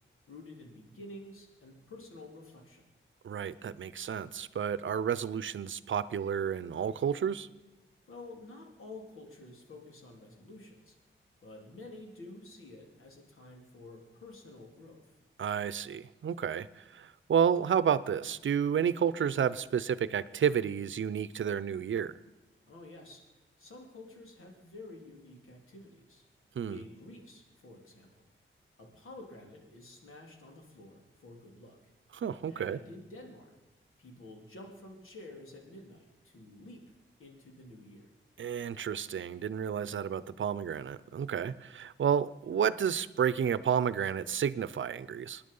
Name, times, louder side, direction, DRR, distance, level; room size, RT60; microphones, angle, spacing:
voice 1, 0.3-2.9 8.1-11.0 11.4-15.1 22.7-23.2 23.6-26.2 26.7-28.2 28.8-31.8 32.5-33.5 34.0-36.8 37.2-38.1, left 2 dB, 90° left, 1 dB, 3.2 m, -50 dB
voice 2, 3.2-7.5 15.4-22.1 26.6-26.8 32.1-32.8 38.4-45.4, right 8 dB, 70° right, 17 dB, 0.7 m, -31 dB
25.5 x 10.5 x 5.5 m, 1.1 s
wide cardioid pair, 110°, 21 cm